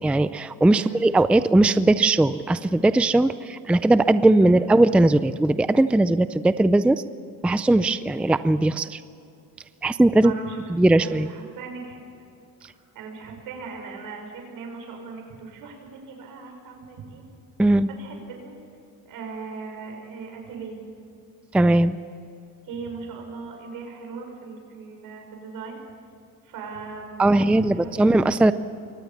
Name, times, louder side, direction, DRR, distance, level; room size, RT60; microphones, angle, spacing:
voice 1, 0.0-7.0 7.4-9.0 9.8-10.3 10.8-11.3 17.6-17.9 21.5-22.0 27.2-28.5, right 2 dB, 5° right, 13 dB, 0.4 m, -19 dB
voice 2, 10.2-10.7 11.0-12.0 12.9-17.2 18.0-18.6 19.1-20.8 22.6-25.8 26.4-27.9, right 4 dB, 75° right, 3 dB, 6.2 m, -38 dB
24.0 x 18.5 x 7.3 m, 2.6 s
cardioid pair, 145°, 34 cm